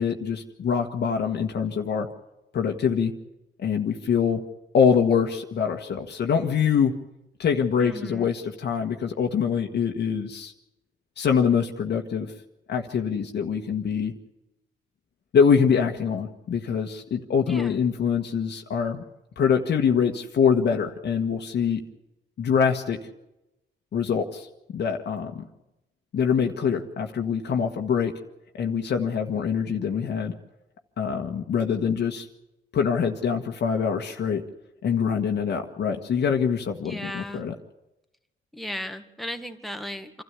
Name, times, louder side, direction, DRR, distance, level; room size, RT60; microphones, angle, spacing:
voice 1, 0.0-2.1 2.5-3.1 3.6-4.4 4.7-6.9 7.4-10.5 11.2-12.3 12.7-14.1 15.3-19.0 19.4-21.8 22.4-23.0 23.9-24.5 24.7-25.5 26.1-28.1 28.5-30.3 31.0-32.3 32.7-34.4 34.8-37.5, left 6 dB, 60° left, 3 dB, 1.5 m, -24 dB
voice 2, 7.8-8.3 17.4-17.8 36.8-37.4 38.5-40.2, left 1 dB, ahead, 6 dB, 1.8 m, -36 dB
26.5 x 13.0 x 8.3 m, 0.95 s
cardioid pair, 90°, 20 cm